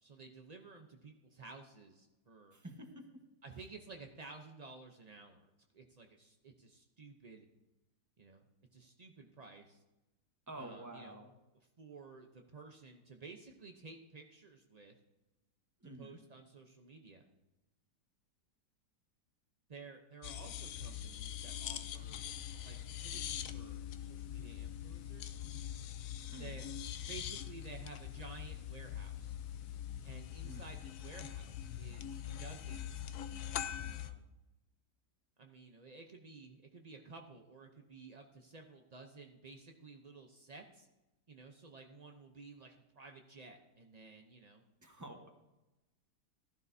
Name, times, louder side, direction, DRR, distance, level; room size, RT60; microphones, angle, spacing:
voice 1, 0.0-2.6 3.4-7.5 8.2-8.4 8.7-9.8 10.6-11.2 11.8-14.9 15.8-17.3 19.7-22.2 22.6-25.3 26.4-26.7 27.1-29.4 30.0-33.1 33.8-34.3 35.4-40.9 41.3-44.6, right 4 dB, 65° right, 3 dB, 0.4 m, -54 dB
voice 2, 2.5-3.2 10.5-11.3 15.8-16.2 26.3-26.5 30.4-30.6 44.8-45.3, right 1 dB, 10° right, 3 dB, 1.0 m, -49 dB
sound 1, 20.2-34.1, left 10 dB, 70° left, 0.8 m, -43 dB
15.0 x 12.5 x 2.7 m, 1.0 s
omnidirectional pair, 1.9 m